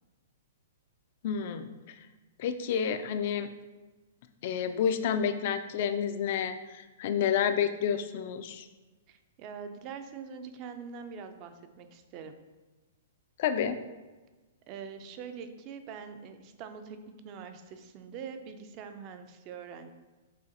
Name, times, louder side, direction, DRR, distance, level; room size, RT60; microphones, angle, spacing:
voice 1, 1.2-1.7 2.4-3.5 4.4-8.7 13.4-13.8, left 8 dB, 50° left, 10 dB, 0.3 m, -29 dB
voice 2, 9.1-12.4 14.7-19.9, right 6 dB, 35° right, 8 dB, 0.4 m, -44 dB
6.3 x 2.5 x 2.8 m, 1.2 s
hypercardioid pair, 140°, 0 cm